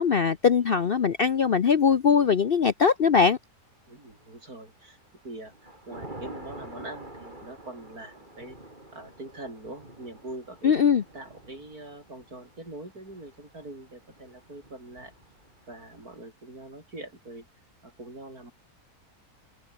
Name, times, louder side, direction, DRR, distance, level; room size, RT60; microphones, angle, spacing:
voice 1, 0.0-3.4 10.6-11.0, left 6 dB, 50° left, 0.8 m, -21 dB
voice 2, 3.9-5.0 5.2-8.6 8.9-10.7 11.1-15.1 15.7-17.5 17.8-18.5, right 2 dB, 70° right, 8.0 m, -43 dB
Thunder / Rain, 4.1-4.6 5.0-16.2, right 1 dB, 30° right, 5.5 m, -47 dB
open air
omnidirectional pair, 1.7 m